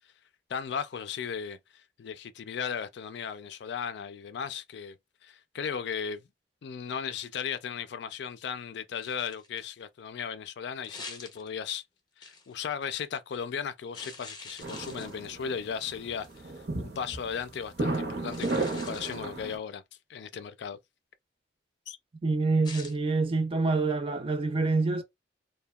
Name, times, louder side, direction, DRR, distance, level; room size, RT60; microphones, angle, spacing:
voice 1, 0.5-5.0 5.2-6.2 6.6-11.8 12.2-16.3 16.8-19.8 20.1-20.8 21.9-22.0, left 7 dB, 65° left, 0.3 m, -36 dB
sound 1, 9.0-9.7 10.8-11.8 12.2-12.5 13.9-15.4 16.2-16.5 18.3-19.3 22.6-23.0, left 4 dB, 25° left, 0.6 m, -45 dB
sound 2, 14.6-19.6, right 2 dB, 60° right, 0.8 m, -34 dB
voice 2, 22.2-25.0, right 3 dB, 30° right, 0.4 m, -26 dB
2.7 x 2.1 x 2.3 m
head